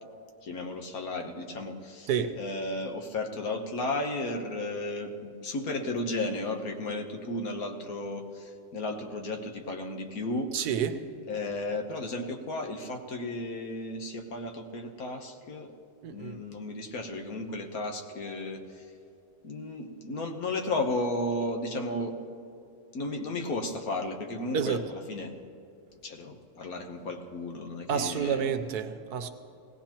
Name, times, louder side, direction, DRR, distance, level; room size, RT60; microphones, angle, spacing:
voice 1, 0.4-2.1 2.3-10.5 11.3-15.7 16.1-18.9 19.4-22.1 22.9-25.3 26.0-28.5, left 2 dB, 65° left, 1.5 m, -34 dB
voice 2, 2.1-2.4 10.5-11.0 16.0-16.4 24.5-24.8 27.9-29.3, right 7 dB, 85° right, 1.3 m, -29 dB
19.0 x 17.5 x 3.0 m
omnidirectional pair, 1.7 m